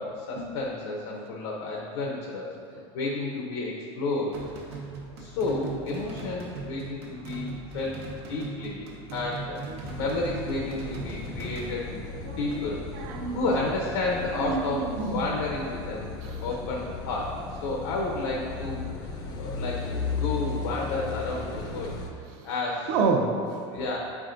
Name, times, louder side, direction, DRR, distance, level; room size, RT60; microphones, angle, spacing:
voice 1, 0.0-2.5 2.9-4.5 5.2-9.6 9.9-12.0 12.4-12.8 13.3-16.1 16.4-22.0 22.4-22.9 23.7-24.0, left 2 dB, 80° left, -2 dB, 0.8 m, -31 dB
sound 1, 4.3-11.7, right 4 dB, 70° right, 0.9 m, -39 dB
Car passing by / Idling / Accelerating revving vroom, 9.8-22.1, left 4 dB, 30° left, 0.5 m, -36 dB
voice 2, 12.9-13.5 14.4-15.3 16.2-16.4 21.6-21.9 22.9-23.8, right 4 dB, 50° right, 3 dB, 0.6 m, -29 dB
7.8 x 4.8 x 2.6 m, 2.4 s
supercardioid pair, 175°, 14 cm